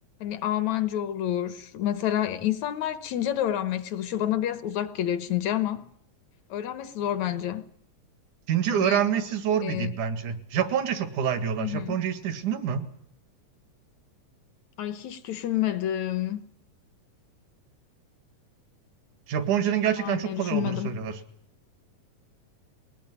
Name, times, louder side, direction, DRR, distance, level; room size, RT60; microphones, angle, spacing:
voice 1, 0.2-5.9 6.5-7.6 8.7-9.1 9.6-9.9 11.6-12.0 14.8-16.4 20.0-20.9, left 11 dB, 65° left, 2.2 m, -29 dB
voice 2, 8.5-12.9 19.3-21.2, right 8 dB, 70° right, 3.3 m, -26 dB
21.0 x 19.0 x 9.8 m
omnidirectional pair, 3.7 m